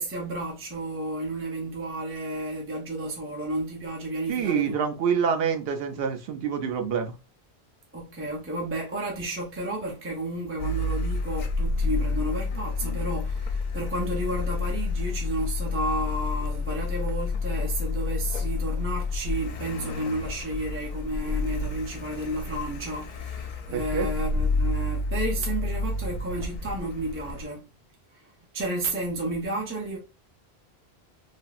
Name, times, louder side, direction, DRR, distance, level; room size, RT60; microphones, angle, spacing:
voice 1, 0.0-4.7 7.9-27.7 28.5-30.0, right 1 dB, 15° right, 0.5 m, -32 dB
voice 2, 4.3-7.2 23.7-24.1, right 7 dB, 70° right, 0.8 m, -26 dB
Car, 10.6-27.5, left 3 dB, 55° left, 0.6 m, -29 dB
3.3 x 2.1 x 2.3 m
omnidirectional pair, 1.1 m